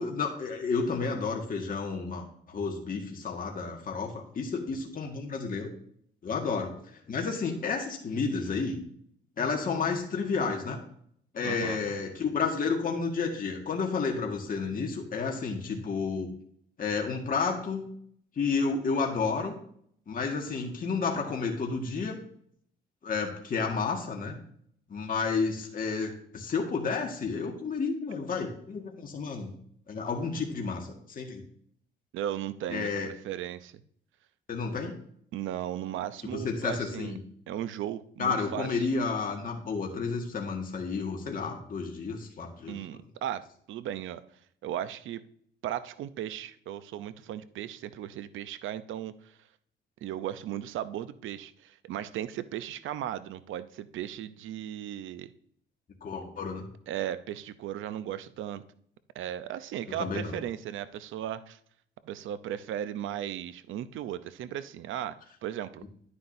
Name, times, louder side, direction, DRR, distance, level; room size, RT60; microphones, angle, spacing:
voice 1, 0.0-5.7 6.2-8.8 9.4-10.8 11.3-16.3 16.8-18.0 18.4-19.6 20.1-22.2 23.0-24.4 24.9-29.5 29.9-31.4 32.7-33.1 34.5-35.0 36.3-37.2 38.2-42.8 56.0-56.6 60.0-60.4, left 4 dB, 45° left, 1 dB, 1.7 m, -31 dB
voice 2, 11.4-11.8 32.1-33.7 35.3-37.2 37.5-38.9 42.7-44.2 44.6-45.2 45.6-49.3 50.0-55.3 56.9-58.6 59.1-61.6 62.0-65.2 65.4-65.8, right 11 dB, 80° right, 14 dB, 0.7 m, -36 dB
10.5 x 9.6 x 2.7 m, 0.64 s
cardioid pair, 90°, 20 cm